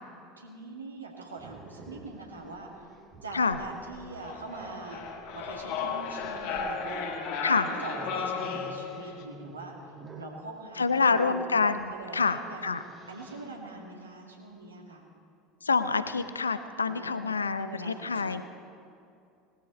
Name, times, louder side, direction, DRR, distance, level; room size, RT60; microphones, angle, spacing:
voice 1, 0.4-2.9 3.2-5.0 5.3-9.7 10.2-11.5 11.9-12.8 13.1-15.1 16.8-18.4, right 3 dB, 80° right, 0 dB, 1.9 m, -43 dB
Growling, 1.4-10.4 11.7-11.9 12.4-13.5, right 3 dB, 30° right, 1.6 m, -48 dB
sound 1, 4.2-9.2, left 6 dB, 55° left, 1.3 m, -34 dB
voice 2, 10.8-12.8 15.6-18.4, left 4 dB, 80° left, 12 dB, 0.5 m, -27 dB
19.0 x 13.5 x 4.3 m, 2.5 s
figure-of-eight pair, 70°, 0 cm